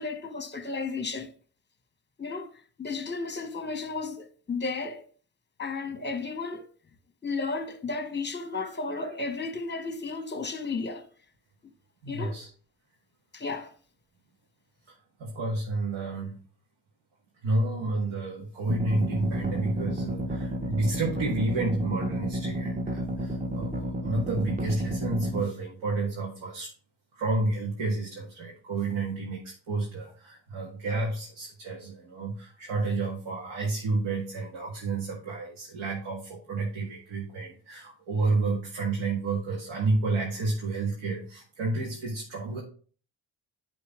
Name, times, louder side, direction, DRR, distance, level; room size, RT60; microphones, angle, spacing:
voice 1, 0.0-1.3 2.2-2.5 2.8-5.0 5.6-6.7 7.2-11.1 12.1-12.4 13.3-13.7, left 4 dB, 20° left, 1.2 m, -33 dB
voice 2, 12.0-12.5 15.2-16.4 17.4-26.7 27.1-42.6, right 3 dB, 75° right, 2.0 m, -30 dB
sound 1, 18.7-25.4, equal, 15° right, 1.1 m, -31 dB
10.0 x 3.8 x 3.7 m
supercardioid pair, 50°, 48 cm